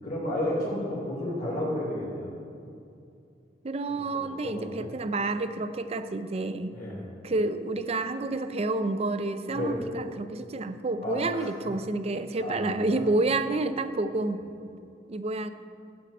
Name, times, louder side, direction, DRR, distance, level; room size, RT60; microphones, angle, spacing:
voice 1, 0.0-2.3 3.9-4.9 6.7-7.0 9.5-9.8 11.0-11.5 12.4-13.0 14.2-14.4, left 1 dB, 50° left, -9 dB, 3.1 m, -32 dB
voice 2, 3.6-6.8 7.2-14.4 15.1-15.5, right 2 dB, 35° right, 10 dB, 0.5 m, -29 dB
16.0 x 8.6 x 4.2 m, 2.5 s
head